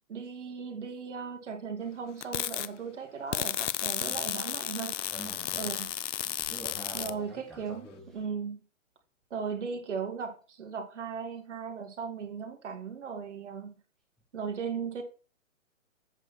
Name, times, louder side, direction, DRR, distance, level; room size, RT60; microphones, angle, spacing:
voice 1, 0.1-4.9 5.6-5.9 6.9-7.9 8.1-8.6 9.3-13.8 14.3-15.0, right 6 dB, 65° right, 2.1 m, -37 dB
sound 1, 2.2-2.7 3.3-7.1, left 11 dB, 65° left, 0.6 m, -33 dB
voice 2, 5.1-5.8 6.2-8.1, right 1 dB, ahead, 0.8 m, -45 dB
8.0 x 4.2 x 5.9 m
hypercardioid pair, 145°, 39 cm